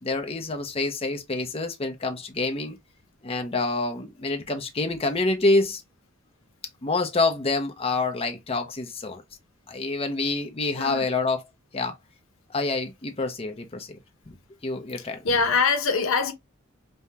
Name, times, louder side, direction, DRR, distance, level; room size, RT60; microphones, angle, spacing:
voice 1, 0.0-2.8 3.2-5.8 6.8-9.2 9.7-11.4 11.7-12.0 12.5-14.0 14.3-14.4 14.6-15.2, left 3 dB, 30° left, 0.7 m, -27 dB
voice 2, 15.0-16.3, left 4 dB, 85° left, 0.8 m, -24 dB
5.4 x 2.2 x 2.8 m
head